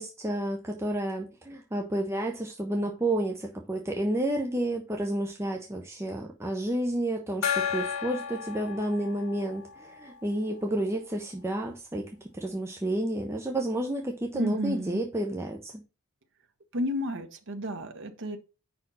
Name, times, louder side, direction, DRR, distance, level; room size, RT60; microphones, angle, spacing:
voice 1, 0.0-12.0 12.3-15.7, right 1 dB, 10° right, 0.7 m, -30 dB
Gong, 7.4-10.7, left 7 dB, 75° left, 0.8 m, -33 dB
voice 2, 14.3-15.0 16.7-18.4, equal, 60° right, 0.9 m, -32 dB
5.2 x 4.4 x 5.6 m
head